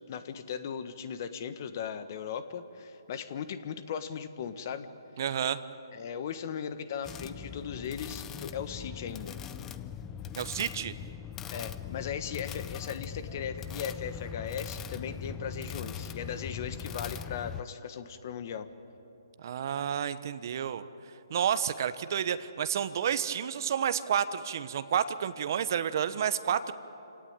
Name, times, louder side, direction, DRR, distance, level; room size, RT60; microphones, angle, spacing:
voice 1, 0.1-4.9 5.9-9.4 11.5-18.7, left 7 dB, 40° left, 11 dB, 1.5 m, -38 dB
voice 2, 5.2-5.6 10.4-10.9 19.4-20.8 21.3-26.7, right 8 dB, 45° right, 13 dB, 1.1 m, -30 dB
sound 1, 7.0-17.6, left 8 dB, 15° left, 0.6 m, -40 dB
28.0 x 17.5 x 9.0 m, 3.0 s
hypercardioid pair, 150°, 2 cm